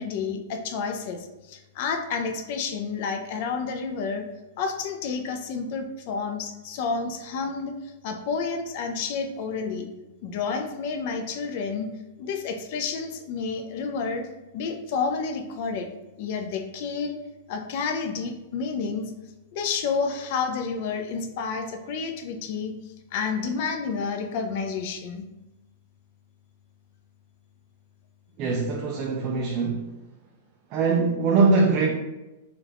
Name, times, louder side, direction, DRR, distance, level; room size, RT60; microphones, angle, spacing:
voice 1, 0.0-4.2 4.6-7.7 8.0-9.9 10.2-11.9 12.2-14.3 14.5-15.9 16.2-17.2 17.5-19.1 19.5-22.7 23.1-25.3, left 5 dB, 40° left, 5 dB, 0.4 m, -30 dB
voice 2, 28.4-30.0 30.7-31.9, right 4 dB, 30° right, 1 dB, 0.3 m, -22 dB
4.1 x 2.4 x 3.4 m, 1.0 s
supercardioid pair, 170°, 0 cm